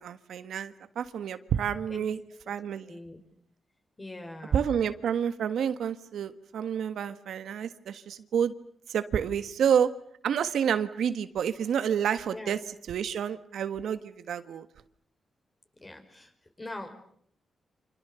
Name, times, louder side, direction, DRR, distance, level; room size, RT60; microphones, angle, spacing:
voice 1, 0.0-2.2 2.5-3.0 4.5-8.5 8.9-9.9 10.2-12.6 12.9-14.7, right 8 dB, 80° right, 11 dB, 1.5 m, -29 dB
voice 2, 2.9-3.2 4.0-4.6 12.3-12.6 15.8-16.3 16.6-16.9, left 2 dB, 20° left, 6 dB, 5.4 m, -41 dB
29.0 x 27.0 x 7.0 m, 0.65 s
cardioid pair, 110°, 0 cm